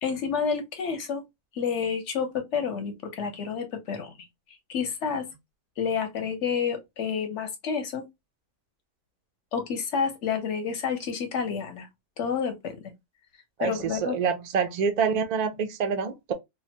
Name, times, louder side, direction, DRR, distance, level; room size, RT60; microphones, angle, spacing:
voice 1, 0.0-1.2 1.5-4.1 4.7-5.3 5.8-8.0 9.5-11.9 12.2-12.9 13.6-14.2, left 6 dB, 65° left, 1.1 m, -29 dB
voice 2, 13.6-16.3, right 6 dB, 70° right, 0.3 m, -27 dB
3.1 x 2.2 x 2.7 m
omnidirectional pair, 1.4 m